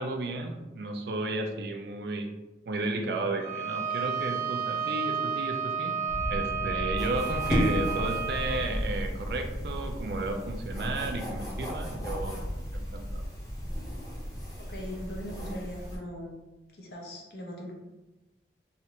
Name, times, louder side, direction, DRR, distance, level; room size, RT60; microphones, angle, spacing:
voice 1, 0.0-2.3 2.7-6.0 6.3-12.4 12.7-13.2, right 2 dB, 65° right, 4 dB, 0.4 m, -33 dB
Bowed string instrument, 3.4-8.7, right 6 dB, 50° right, 0.9 m, -32 dB
sound 1, 6.1-15.3, equal, 10° right, 0.8 m, -37 dB
sound 2, 7.0-16.0, equal, 20° left, 0.8 m, -35 dB
voice 2, 14.7-16.3 16.7-17.7, equal, 65° left, -1 dB, 0.7 m, -40 dB
3.2 x 2.5 x 2.8 m, 1.1 s
head